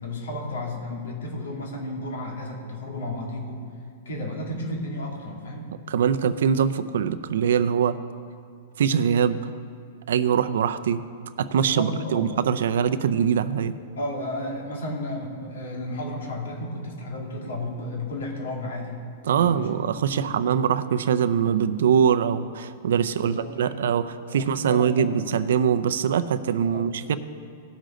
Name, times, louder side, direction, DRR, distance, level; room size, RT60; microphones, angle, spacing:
voice 1, 0.0-3.6 4.0-5.7 11.5-12.3 12.8-13.1 13.9-19.0 19.3-19.7 20.1-20.4 23.1-23.8 24.2-25.2 26.4-26.9, left 1 dB, 85° left, -1 dB, 2.6 m, -33 dB
voice 2, 5.9-8.0 8.8-9.5 10.1-11.0 11.4-13.8 19.3-27.2, right 8 dB, 75° right, 12 dB, 0.5 m, -23 dB
17.5 x 6.6 x 3.9 m, 2.4 s
hypercardioid pair, 150°, 0 cm